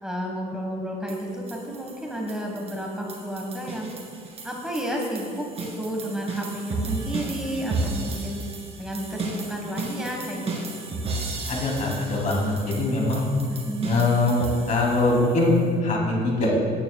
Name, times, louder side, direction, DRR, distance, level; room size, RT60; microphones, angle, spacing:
voice 1, 0.0-3.9 4.4-8.4 8.8-10.5 13.5-14.1, right 1 dB, 5° right, -1 dB, 1.4 m, -31 dB
sound 1, 1.1-15.6, right 3 dB, 35° right, 2.2 m, -34 dB
voice 2, 11.5-13.3 13.9-16.5, left 2 dB, 50° left, -2 dB, 2.9 m, -22 dB
17.5 x 9.6 x 2.3 m, 2.2 s
cardioid pair, 110°, 17 cm